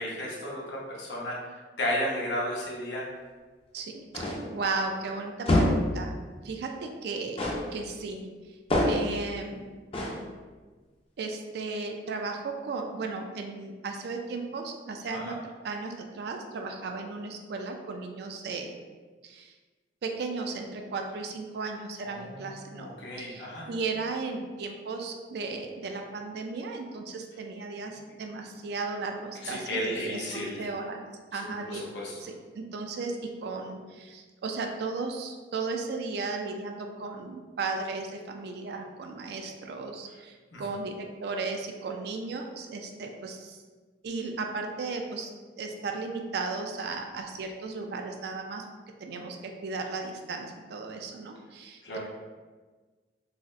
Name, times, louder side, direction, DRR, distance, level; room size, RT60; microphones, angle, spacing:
voice 1, 0.0-1.4 1.8-3.0 15.1-15.3 22.0-23.6 29.4-30.7 31.4-32.1 40.5-40.6 51.8-52.0, left 1 dB, 75° left, -4 dB, 0.8 m, -33 dB
voice 2, 3.7-6.1 6.4-7.4 7.7-8.2 8.5-8.6 8.9-9.7 11.2-15.3 15.6-18.7 19.2-19.5 20.0-22.9 23.2-31.0 31.3-31.8 32.2-43.6 44.0-45.3 45.6-48.6 49.0-49.4 49.6-52.0, right 3 dB, 65° right, 3 dB, 0.4 m, -35 dB
sound 1, 4.1-4.5 5.4-5.9 7.4-7.7 8.7-9.2 9.9-10.2, left 1 dB, 35° left, 0.5 m, -25 dB
3.9 x 2.0 x 2.5 m, 1.4 s
head